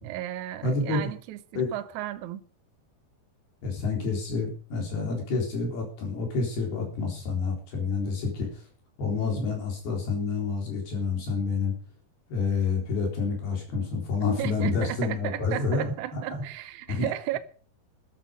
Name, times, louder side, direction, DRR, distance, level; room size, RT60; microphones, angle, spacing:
voice 1, 0.0-2.4 14.4-17.4, right 13 dB, 80° right, 1.7 m, -34 dB
voice 2, 0.6-1.0 1.6-1.7 3.6-8.6 9.0-11.8 12.3-16.4 16.9-17.1, left 4 dB, 70° left, 6.0 m, -28 dB
14.0 x 11.5 x 5.2 m
omnidirectional pair, 4.7 m